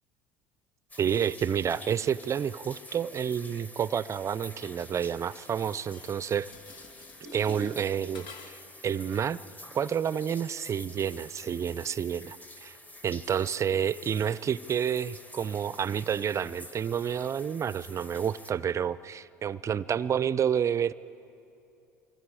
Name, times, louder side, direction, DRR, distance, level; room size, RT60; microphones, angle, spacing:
sound 1, 0.9-18.5, left 1 dB, 15° left, 1.9 m, -49 dB
voice 1, 1.0-6.5 7.3-8.6 8.8-9.4 9.7-12.8 13.0-20.9, right 8 dB, 35° right, 18 dB, 0.5 m, -29 dB
Dishes pots and pans, 5.4-8.8, left 3 dB, 60° left, 1.8 m, -48 dB
25.0 x 24.0 x 4.9 m, 2.7 s
hypercardioid pair, 70°, 9 cm